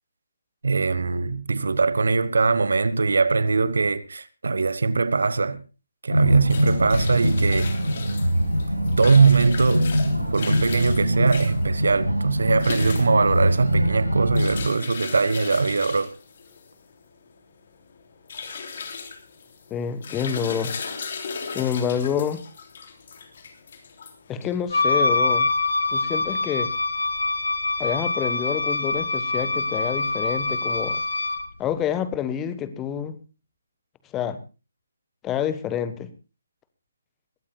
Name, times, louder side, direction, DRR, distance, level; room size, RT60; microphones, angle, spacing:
voice 1, 0.6-5.6 6.0-7.7 9.0-9.9 10.3-16.1, right 4 dB, 60° right, 1.3 m, -21 dB
sound 1, 6.1-14.6, equal, 90° right, 6.8 m, -23 dB
sound 2, 6.2-24.7, left 5 dB, 45° left, 3.1 m, -37 dB
voice 2, 19.7-20.7 21.4-22.4 24.3-25.5 25.9-26.7 27.8-31.0 31.6-33.2 34.1-34.4 35.2-36.1, left 8 dB, 15° left, 1.3 m, -27 dB
Wind instrument woodwind instrument, 24.7-31.5, left 3 dB, 65° left, 1.7 m, -24 dB
22.0 x 16.0 x 2.3 m
figure-of-eight pair, 145°, 0 cm